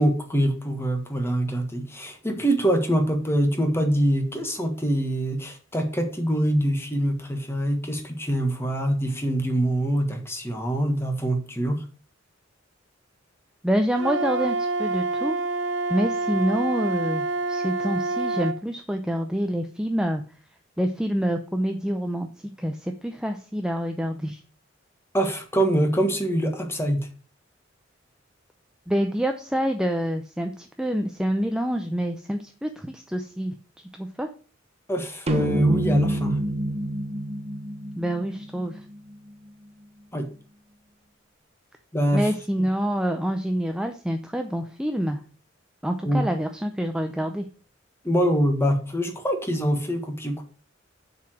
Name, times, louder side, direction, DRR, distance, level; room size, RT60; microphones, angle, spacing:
voice 1, 0.0-11.8 25.1-27.0 34.9-36.3 40.1-40.3 41.9-42.3 46.0-46.2 48.0-50.4, right 1 dB, 15° left, 4 dB, 1.5 m, -24 dB
voice 2, 13.6-15.4 15.9-20.2 20.8-22.3 22.6-24.4 28.9-33.6 33.9-34.3 38.0-38.8 42.1-45.2 45.8-47.5, equal, 5° right, 5 dB, 0.6 m, -27 dB
Wind instrument woodwind instrument, 14.0-18.6, right 3 dB, 70° right, 0.9 m, -27 dB
sound 1, 35.3-38.8, right 1 dB, 35° right, 1.2 m, -26 dB
6.9 x 4.8 x 6.3 m, 0.38 s
head